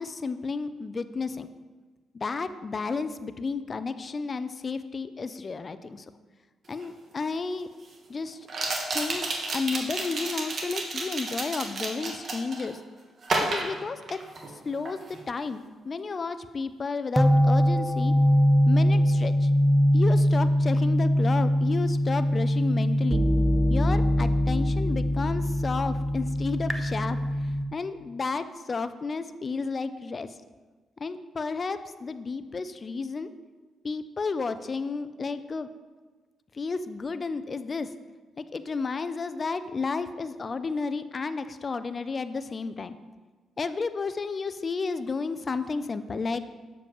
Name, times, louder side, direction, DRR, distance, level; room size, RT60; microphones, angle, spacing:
voice 1, 0.0-1.5 2.1-6.1 6.7-7.7 8.1-8.5 8.9-9.3 9.5-12.8 13.5-14.2 14.5-15.0 15.3-18.1 18.7-19.5 19.9-23.2 23.7-27.2 27.7-30.3 31.0-33.3 33.8-35.7 36.5-37.9 38.4-42.9 43.6-46.4, left 4 dB, 35° left, 12 dB, 0.4 m, -32 dB
sound 1, 6.8-6.9 8.5-12.7 13.2-14.6 14.8-15.2, right 2 dB, 50° right, 1.1 m, -31 dB
sound 2, 17.2-27.7, equal, 10° right, 0.6 m, -22 dB
7.1 x 6.9 x 3.0 m, 1.4 s
cardioid pair, 85°, 0 cm